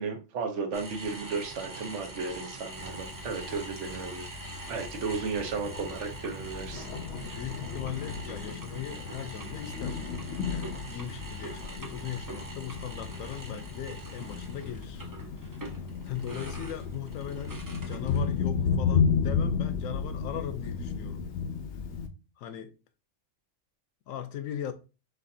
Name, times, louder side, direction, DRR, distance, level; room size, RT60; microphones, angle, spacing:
voice 1, 0.0-6.9, right 4 dB, 65° right, 1.1 m, -34 dB
sound 1, 0.7-18.5, right 2 dB, 25° right, 0.4 m, -43 dB
Thunder, 2.7-22.1, left 6 dB, 65° left, 0.8 m, -33 dB
voice 2, 7.2-10.0 10.5-15.0 16.0-21.3 22.4-22.7 24.1-24.7, left 10 dB, 85° left, 1.0 m, -39 dB
6.3 x 2.6 x 2.6 m
omnidirectional pair, 1.4 m